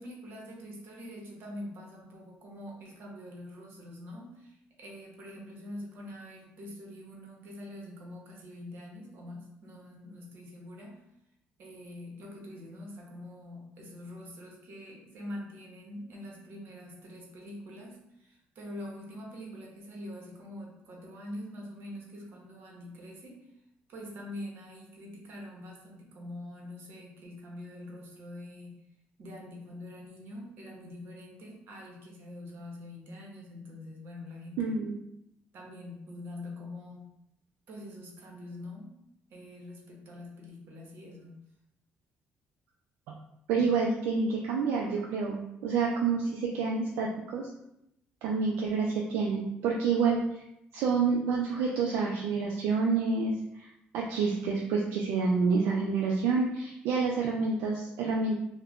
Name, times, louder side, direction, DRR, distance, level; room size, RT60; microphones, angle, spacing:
voice 1, 0.0-11.0 11.6-23.5 23.9-28.8 29.2-34.7 35.5-37.1 37.7-38.9 39.3-41.3, left 1 dB, 70° right, -1 dB, 0.8 m, -44 dB
voice 2, 34.6-35.0 43.1-43.2 43.5-47.5 48.2-50.4 50.7-53.7 53.9-58.4, right 4 dB, 85° right, -2 dB, 0.3 m, -28 dB
2.4 x 2.1 x 3.4 m, 0.81 s
cardioid pair, 100°, 4 cm